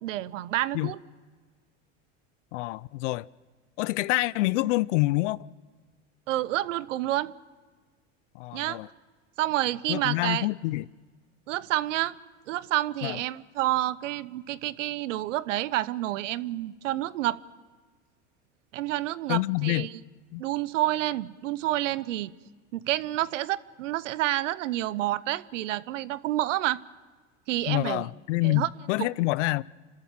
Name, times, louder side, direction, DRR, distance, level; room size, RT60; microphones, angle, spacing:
voice 1, 0.0-1.0 6.3-7.3 8.5-8.8 9.4-10.5 11.5-12.2 12.5-17.4 18.7-19.9 20.4-22.3 22.7-26.8 27.5-28.1 28.4-28.7 29.0-29.1, right 15 dB, 80° right, 0.8 m, -29 dB
voice 2, 2.5-3.3 3.8-5.5 8.3-8.9 9.9-10.9 13.0-13.2 19.3-19.9 20.3-20.4 27.7-29.6, left 19 dB, 75° left, 0.6 m, -27 dB
29.5 x 13.0 x 7.6 m
hypercardioid pair, 100°, 37 cm